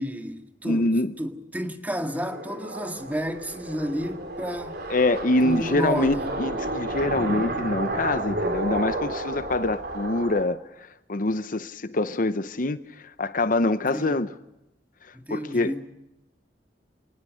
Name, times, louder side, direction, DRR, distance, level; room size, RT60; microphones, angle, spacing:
voice 1, 0.0-0.9 1.2-4.7 5.4-6.4 13.9-14.2 15.1-15.8, equal, 10° right, 1.9 m, -31 dB
voice 2, 0.6-1.1 4.9-14.3 15.3-15.8, left 2 dB, 50° left, 0.8 m, -25 dB
sound 1, 2.2-10.4, right 2 dB, 60° right, 4.2 m, -31 dB
28.0 x 18.5 x 6.4 m
head